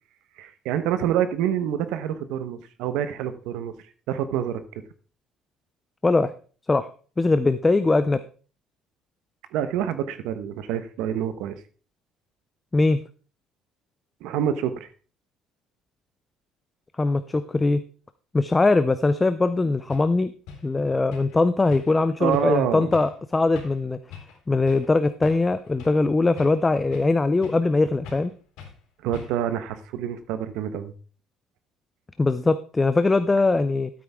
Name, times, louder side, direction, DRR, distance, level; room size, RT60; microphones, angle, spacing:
voice 1, 0.4-3.7 4.1-4.6 9.5-11.6 14.2-14.9 22.2-22.9 29.0-30.9, right 10 dB, 75° right, 11 dB, 1.0 m, -27 dB
voice 2, 7.2-8.2 12.7-13.0 17.0-17.8 18.3-20.3 20.6-24.0 24.5-28.3 32.2-33.9, left 3 dB, 10° left, 12 dB, 0.4 m, -21 dB
sound 1, 19.4-19.5 19.9-20.1 20.5-20.7 21.1-21.4 21.7-22.0 22.3-22.5 22.9-23.2 23.5-23.8 24.1-24.4 24.7-24.9 25.2-26.0 26.4-27.1 27.4-27.7 28.0-28.3 28.6-28.8 29.1-29.5, left 6 dB, 80° left, 3.6 m, -42 dB
12.5 x 8.6 x 3.5 m, 0.39 s
cardioid pair, 180°, 0 cm